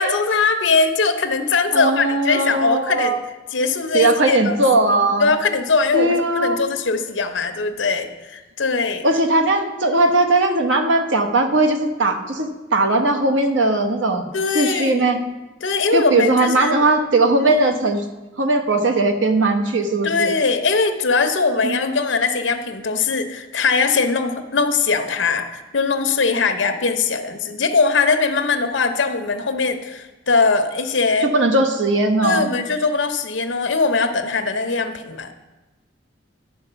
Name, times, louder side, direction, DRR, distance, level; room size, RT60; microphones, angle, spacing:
voice 1, 0.0-3.2 3.5-4.6 5.2-9.0 14.3-15.1 15.6-16.7 17.4-17.8 20.0-31.3 32.2-35.3, left 4 dB, 80° left, 7 dB, 0.9 m, -21 dB
voice 2, 1.7-3.2 3.9-5.3 5.9-6.6 9.0-15.2 15.9-18.0 18.4-20.3 21.6-21.9 31.2-32.5, right 2 dB, 90° right, 5 dB, 1.0 m, -19 dB
11.0 x 4.6 x 6.9 m, 1.1 s
head